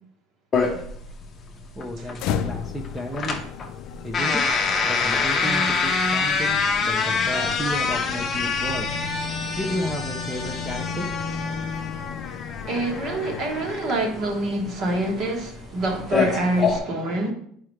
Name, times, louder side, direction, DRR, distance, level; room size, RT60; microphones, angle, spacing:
sound 1, 0.5-16.8, left 4 dB, 25° left, 0.9 m, -26 dB
voice 1, 1.8-3.5 4.0-4.4 4.8-9.0 9.6-11.1, equal, 5° right, 0.6 m, -32 dB
sound 2, 2.2-14.2, left 7 dB, 55° left, 0.5 m, -34 dB
voice 2, 12.7-17.3, right 1 dB, 40° right, 1.4 m, -26 dB
10.5 x 4.8 x 3.2 m
cardioid pair, 165°, 0 cm